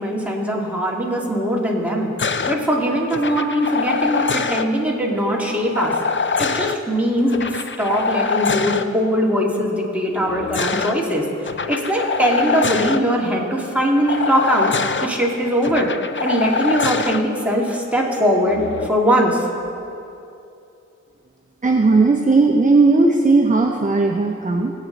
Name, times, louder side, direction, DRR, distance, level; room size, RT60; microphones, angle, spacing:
voice 1, 0.0-2.1 2.4-5.9 6.4-11.2 11.7-14.7 15.0-15.9 16.2-19.4, equal, 5° right, -3 dB, 2.5 m, -21 dB
sound 1, 2.2-2.6 3.1-4.7 5.7-6.8 7.3-8.8 10.1-10.9 11.5-13.0 14.1-15.1 15.6-17.2 18.5-18.9, left 5 dB, 40° left, 0.6 m, -24 dB
voice 2, 21.6-24.7, right 3 dB, 25° right, 2 dB, 0.9 m, -16 dB
20.0 x 8.5 x 4.0 m, 2.7 s
cardioid pair, 60°, 30 cm